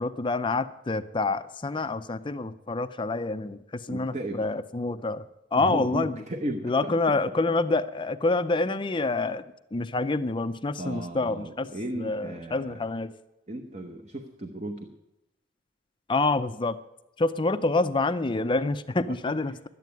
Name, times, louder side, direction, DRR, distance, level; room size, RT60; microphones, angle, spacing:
voice 1, 0.0-5.2 5.5-6.2 6.6-11.7 11.9-13.1 16.1-16.8 17.2-19.7, left 3 dB, 25° left, 11 dB, 0.5 m, -27 dB
voice 2, 3.9-4.4 5.6-6.9 10.8-12.8 13.5-14.9 19.1-19.2, right 1 dB, 35° right, 5 dB, 1.0 m, -35 dB
12.0 x 9.2 x 9.3 m, 0.94 s
head